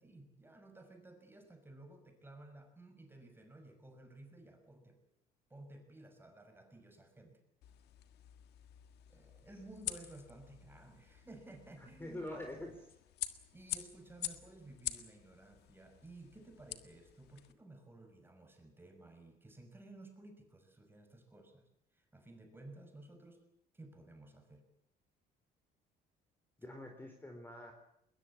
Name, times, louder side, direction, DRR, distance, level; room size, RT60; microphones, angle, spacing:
voice 1, 0.0-5.0 5.5-7.4 9.1-12.2 13.5-23.4 23.7-24.6, right 2 dB, 15° right, 6 dB, 6.1 m, -55 dB
sound 1, 7.6-17.5, left 13 dB, 80° left, 1.7 m, -47 dB
voice 2, 12.0-12.9 26.6-27.7, left 1 dB, 10° left, 3 dB, 4.2 m, -45 dB
21.5 x 21.0 x 8.6 m, 0.76 s
cardioid pair, 110°, 17 cm